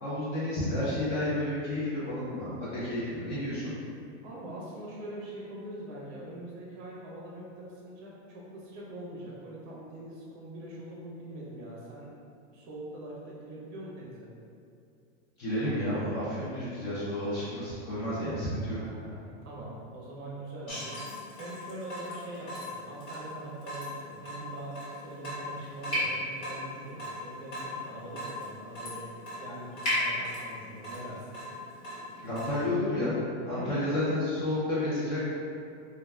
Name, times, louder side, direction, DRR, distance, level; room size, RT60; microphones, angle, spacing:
voice 1, 0.0-3.7 15.4-18.8 32.2-33.2 33.4-35.3, left 1 dB, 30° left, -10 dB, 0.5 m, -31 dB
voice 2, 4.2-12.1 12.5-14.3 18.7-21.0 21.4-29.0 29.4-31.4 33.5-34.0, right 1 dB, 35° right, -5 dB, 0.7 m, -43 dB
Water tap faucet / Drip, 20.7-32.6, left 1 dB, 60° left, 1.3 m, -37 dB
2.3 x 2.2 x 3.3 m, 2.4 s
supercardioid pair, 150°, 36 cm